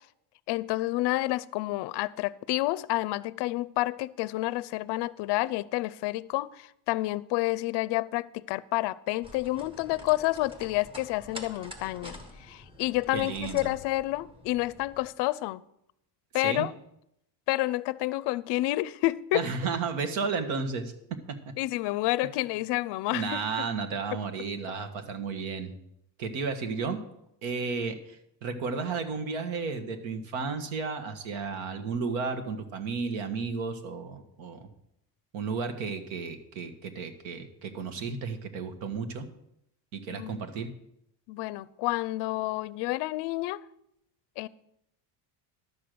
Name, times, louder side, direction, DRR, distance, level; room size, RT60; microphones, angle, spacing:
voice 1, 0.5-15.6 16.3-16.7 17.5-19.4 21.6-23.7 40.1-40.3 41.3-43.6 44.4-44.5, left 18 dB, 60° left, 0.5 m, -29 dB
sound 1, 9.2-15.1, left 1 dB, 10° right, 1.3 m, -47 dB
voice 2, 13.1-13.7 16.3-16.7 19.3-21.5 23.1-25.8 26.2-27.0 27.4-34.7 35.3-39.3 39.9-40.7, right 5 dB, 75° right, 1.7 m, -33 dB
11.5 x 6.7 x 7.8 m
cardioid pair, 160°, 47 cm